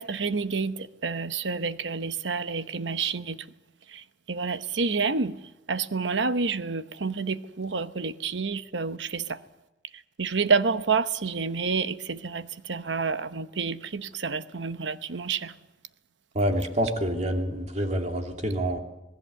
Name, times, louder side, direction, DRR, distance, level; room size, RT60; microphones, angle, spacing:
voice 1, 0.0-3.5 3.9-5.4 5.7-9.4 9.9-15.5, right 4 dB, 80° right, 1.0 m, -29 dB
voice 2, 16.3-18.8, equal, 40° right, 2.6 m, -27 dB
26.5 x 18.5 x 8.2 m
head